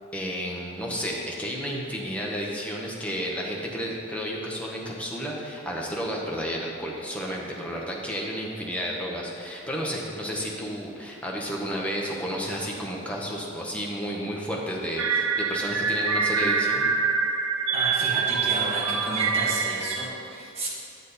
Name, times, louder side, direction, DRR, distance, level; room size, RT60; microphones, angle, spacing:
voice 1, 0.1-16.9, equal, 5° left, -3 dB, 1.1 m, -32 dB
sound 1, 15.0-20.1, right 5 dB, 80° right, 0.6 m, -25 dB
voice 2, 17.7-20.7, right 1 dB, 30° right, -7 dB, 2.2 m, -32 dB
10.0 x 7.3 x 4.1 m, 2.7 s
head